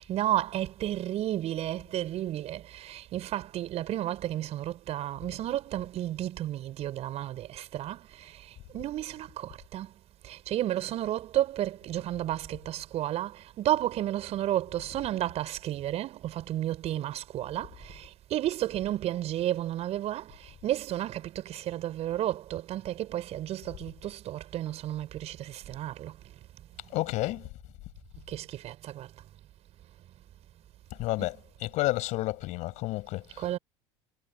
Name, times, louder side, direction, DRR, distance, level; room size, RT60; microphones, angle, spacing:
voice 1, 0.0-9.9 10.2-26.2 28.3-29.1 31.2-31.4 33.4-33.6, right 13 dB, 45° right, 4.3 m, -32 dB
voice 2, 26.9-27.5 30.9-33.5, left 19 dB, 55° left, 6.1 m, -31 dB
hypercardioid pair, 75°, 15 cm